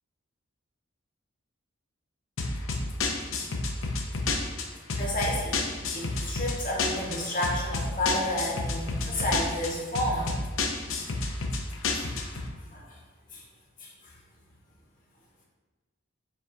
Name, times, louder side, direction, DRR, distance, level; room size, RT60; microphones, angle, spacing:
sound 1, 2.4-12.5, left 3 dB, 75° left, 0.7 m, -30 dB
voice 1, 4.7-5.6 5.9-10.4 11.7-12.1 12.6-13.0 13.3-13.4 13.8-14.2, left 1 dB, 40° left, -3 dB, 1.4 m, -31 dB
7.4 x 4.6 x 2.8 m, 1.3 s
head